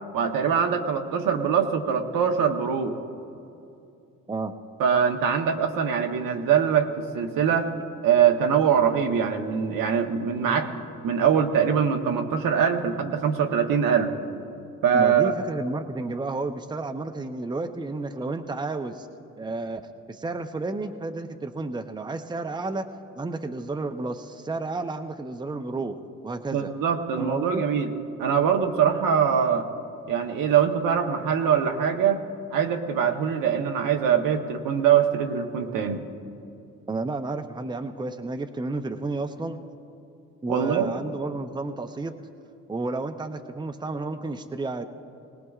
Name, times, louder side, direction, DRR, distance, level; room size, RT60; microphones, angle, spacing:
voice 1, 0.1-2.9 4.8-7.7 8.0-10.7 11.0-14.2 14.8-15.4 26.5-27.9 28.2-29.7 30.1-32.2 32.5-36.0 40.5-40.9, right 7 dB, 70° right, 4 dB, 1.1 m, -23 dB
voice 2, 14.9-18.9 19.4-19.8 20.2-22.8 23.2-25.9 26.2-26.7 27.2-27.6 36.9-39.6 40.4-42.1 42.7-44.9, right 3 dB, 15° right, 6 dB, 0.7 m, -31 dB
20.5 x 18.5 x 2.4 m, 2.6 s
supercardioid pair, 70°, 34 cm